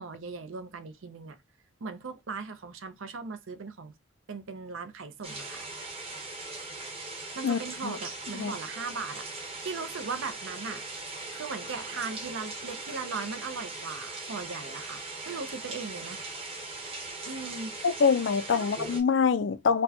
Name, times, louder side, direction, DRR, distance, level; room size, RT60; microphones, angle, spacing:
voice 1, 0.0-1.4 1.8-3.9 4.3-5.7 7.4-10.8 11.3-16.2 17.3-17.7 18.5-18.7, right 4 dB, 70° right, 0.6 m, -38 dB
sound 1, 5.2-19.0, right 2 dB, 30° right, 0.9 m, -40 dB
voice 2, 7.4-8.0 8.3-8.5 17.8-19.8, left 5 dB, 60° left, 0.4 m, -25 dB
4.2 x 2.2 x 2.7 m
head